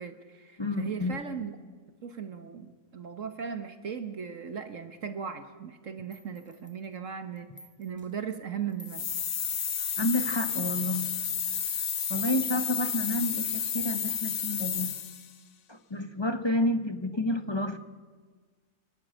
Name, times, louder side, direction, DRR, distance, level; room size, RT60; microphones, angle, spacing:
voice 1, 0.0-1.5 2.0-7.5 7.8-9.0, right 7 dB, 50° right, 9 dB, 1.3 m, -37 dB
voice 2, 0.6-1.2 10.0-11.1 12.1-15.0 15.7-17.8, left 1 dB, 25° left, 9 dB, 0.6 m, -30 dB
sound 1, 6.1-6.9 7.4-8.1 8.7-9.3 9.9-11.6 12.2-12.8, right 1 dB, 5° left, 1.5 m, -47 dB
sound 2, 8.9-15.3, left 7 dB, 55° left, 1.3 m, -31 dB
26.0 x 12.0 x 9.0 m, 1.5 s
omnidirectional pair, 1.8 m